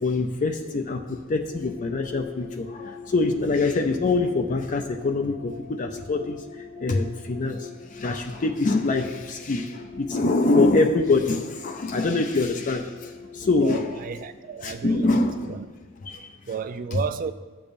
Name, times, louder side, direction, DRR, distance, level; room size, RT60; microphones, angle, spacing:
voice 1, 0.0-6.4 6.8-13.9 14.6-15.6 16.0-16.3 16.9-17.0, left 3 dB, 40° left, 0.4 m, -24 dB
sound 1, 1.5-15.4, left 5 dB, 25° right, 0.9 m, -44 dB
voice 2, 13.6-15.7 16.5-17.3, right 6 dB, 40° right, 0.3 m, -32 dB
13.0 x 6.7 x 2.6 m
head